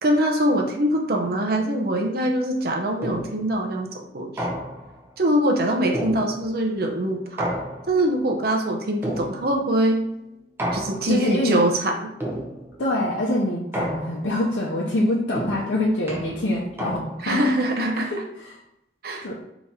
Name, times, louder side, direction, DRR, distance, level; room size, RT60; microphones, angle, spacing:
voice 1, 0.0-4.5 5.2-7.6 7.9-10.0 10.7-11.9 17.2-18.1 19.0-19.3, right 1 dB, 55° right, 2 dB, 0.6 m, -23 dB
sound 1, 3.0-3.6 4.4-5.0 5.9-6.7 7.4-8.2 9.0-9.7 10.6-11.3 12.2-12.9 13.7-14.5 15.4-17.4, equal, 15° right, 0.5 m, -31 dB
voice 2, 11.1-11.6 12.8-17.5 17.9-18.6 19.2-19.3, left 1 dB, 85° left, -5 dB, 0.7 m, -25 dB
3.6 x 3.0 x 4.1 m, 0.83 s
head